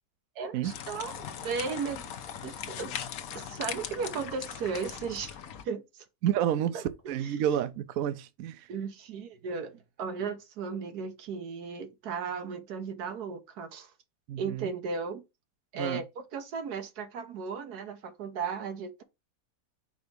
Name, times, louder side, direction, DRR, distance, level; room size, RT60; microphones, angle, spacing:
voice 1, 0.4-2.1 2.4-3.0 3.3-5.4 5.6-6.0 6.7-6.8 7.2-7.4 8.7-13.9 14.4-15.2 15.7-19.0, right 5 dB, 85° right, 1.5 m, -36 dB
sound 1, 0.6-5.6, left 8 dB, 70° left, 1.2 m, -39 dB
voice 2, 6.2-8.7 14.3-14.7 15.7-16.0, right 10 dB, 70° right, 1.0 m, -30 dB
5.0 x 4.6 x 5.2 m
omnidirectional pair, 1.6 m